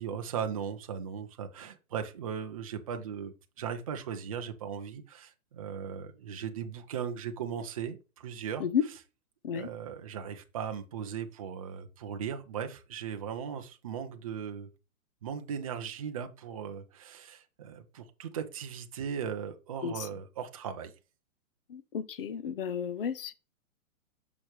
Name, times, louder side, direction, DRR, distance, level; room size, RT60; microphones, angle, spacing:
voice 1, 0.0-8.6 9.5-14.7 15.2-20.9, right 7 dB, 25° right, 0.6 m, -38 dB
voice 2, 21.7-23.3, left 8 dB, 40° left, 0.7 m, -32 dB
6.3 x 5.9 x 3.1 m
hypercardioid pair, 165°, 43 cm